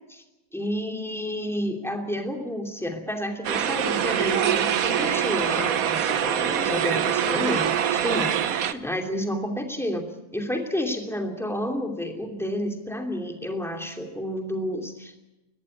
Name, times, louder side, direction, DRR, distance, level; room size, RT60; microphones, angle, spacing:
voice 1, 0.5-10.0 10.3-15.2, left 1 dB, ahead, 3 dB, 2.7 m, -30 dB
sound 1, 3.4-8.7, right 9 dB, 65° right, 1.3 m, -24 dB
21.5 x 14.0 x 9.8 m, 1.0 s
omnidirectional pair, 1.7 m